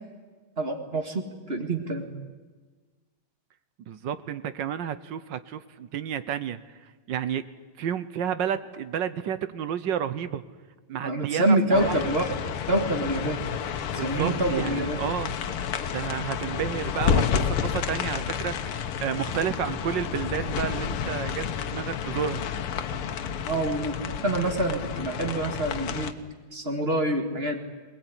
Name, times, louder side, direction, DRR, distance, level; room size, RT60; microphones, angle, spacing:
voice 1, 0.6-2.1 11.0-12.3 12.7-13.4 13.9-15.0 23.4-23.9 24.2-26.1 26.5-27.6, right 1 dB, 30° right, 5 dB, 2.2 m, -26 dB
voice 2, 3.9-6.6 7.1-7.5 7.8-10.4 10.9-12.1 13.9-15.4 15.9-22.4, right 9 dB, 65° right, 14 dB, 1.5 m, -31 dB
sound 1, 11.7-26.1, left 7 dB, 85° left, 2.0 m, -30 dB
21.0 x 20.5 x 9.8 m, 1.4 s
omnidirectional pair, 2.3 m